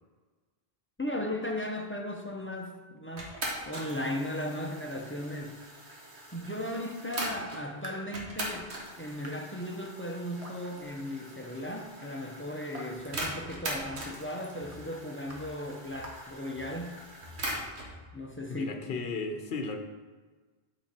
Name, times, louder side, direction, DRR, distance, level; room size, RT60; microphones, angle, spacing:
voice 1, 1.0-3.4 3.6-5.6 5.8-5.9 6.3-17.0 18.1-19.0, left 1 dB, 15° left, 1 dB, 0.7 m, -36 dB
sound 1, 3.2-7.6 8.1-17.9, right 1 dB, 85° right, 1.7 m, -41 dB
Raindrop / Drip, 7.2-17.1, right 1 dB, 35° right, 1.3 m, -52 dB
sound 2, 12.9-13.1 13.8-14.1 14.6-14.9 15.3-15.6 15.9-16.2 16.6-17.6 17.9-18.3, left 3 dB, 55° right, 3.0 m, -53 dB
voice 2, 18.5-19.8, left 3 dB, 65° left, 5 dB, 1.0 m, -35 dB
9.1 x 5.0 x 4.3 m, 1.4 s
omnidirectional pair, 1.1 m